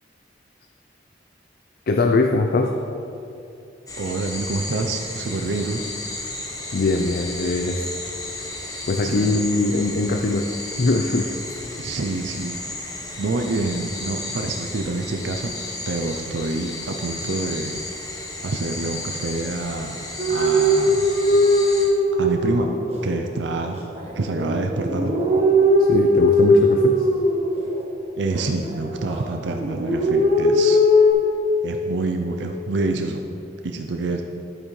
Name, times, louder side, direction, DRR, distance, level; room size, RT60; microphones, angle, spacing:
voice 1, 1.9-2.8 6.7-7.9 8.9-10.5 10.8-11.3 25.9-27.1, left 3 dB, 50° left, 4 dB, 0.4 m, -21 dB
sound 1, 3.9-21.8, left 2 dB, 20° left, 1.1 m, -33 dB
voice 2, 4.0-5.8 9.0-9.4 11.8-12.6 13.2-15.5 15.9-17.8 18.4-20.0 20.3-21.1 22.2-22.7 23.0-23.8 24.1-25.1 28.2-30.8 31.6-33.2 33.6-34.2, right 3 dB, 70° right, 3 dB, 0.5 m, -27 dB
sound 2, 20.2-23.1 23.6-27.9 28.3-29.3 29.6-31.1, left 1 dB, 35° right, 1.4 m, -19 dB
11.5 x 8.7 x 3.2 m, 2.8 s
head